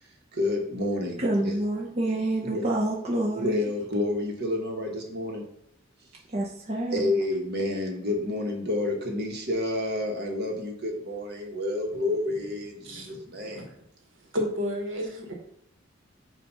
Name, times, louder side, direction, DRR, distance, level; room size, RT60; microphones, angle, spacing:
voice 1, 0.4-1.2 2.4-2.6 3.4-5.4 6.9-13.7, left 2 dB, 55° right, 1 dB, 1.2 m, -29 dB
voice 2, 1.2-3.7 6.3-7.2, right 1 dB, 35° right, -3 dB, 0.8 m, -28 dB
voice 3, 12.8-13.2 13.5-13.8 14.3-15.3, equal, 75° right, 2 dB, 1.3 m, -31 dB
7.0 x 2.6 x 5.4 m, 0.76 s
head